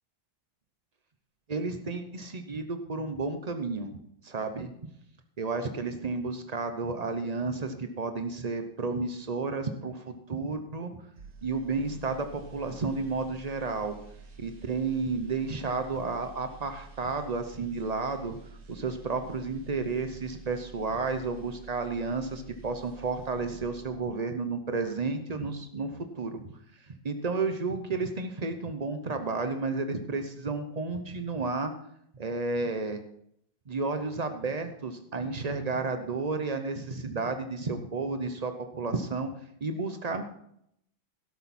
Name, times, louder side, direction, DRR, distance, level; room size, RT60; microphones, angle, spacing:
voice 1, 1.5-4.0 4.2-4.7 5.4-10.9 11.4-13.9 14.4-18.4 18.7-26.4 26.9-31.7 32.1-33.0 33.7-39.3 39.6-40.2, right 3 dB, 80° right, 7 dB, 0.3 m, -32 dB
sound 1, 11.2-24.3 24.6-24.8, right 4 dB, 50° right, 1.8 m, -50 dB
12.5 x 11.5 x 4.3 m, 0.72 s
omnidirectional pair, 2.1 m